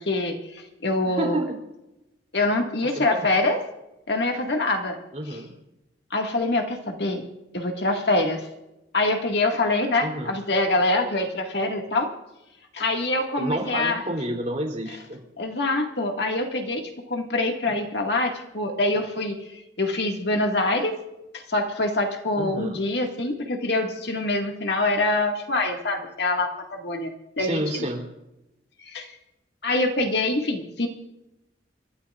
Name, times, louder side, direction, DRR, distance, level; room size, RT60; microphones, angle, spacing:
voice 1, 0.0-1.4 2.3-3.6 4.1-5.0 5.3-5.4 6.1-7.2 7.5-8.4 8.9-12.1 12.7-14.0 15.4-19.4 19.8-21.0 21.3-27.9 28.8-29.2 29.6-30.9, left 2 dB, 65° left, 3 dB, 2.0 m, -25 dB
voice 2, 1.0-1.5 2.9-3.3 5.1-5.5 10.0-10.4 13.4-15.2 22.4-22.8 27.4-28.0, right 1 dB, 40° right, 1 dB, 3.3 m, -29 dB
29.5 x 13.0 x 2.5 m, 0.93 s
head